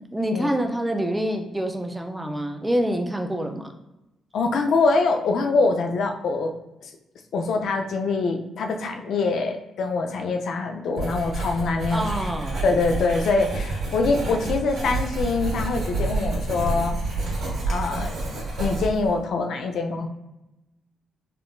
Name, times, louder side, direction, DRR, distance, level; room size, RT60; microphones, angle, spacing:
voice 1, 0.1-3.7 11.9-12.6, equal, 10° right, 4 dB, 0.3 m, -26 dB
voice 2, 4.3-6.5 6.8-6.9 7.3-12.3 12.6-17.0 17.7-18.2 18.6-20.1, left 3 dB, 65° left, 4 dB, 0.4 m, -24 dB
Writing, 11.0-19.2, right 2 dB, 50° right, 1.3 m, -29 dB
3.5 x 2.4 x 2.3 m, 0.94 s
cardioid pair, 130°, 0 cm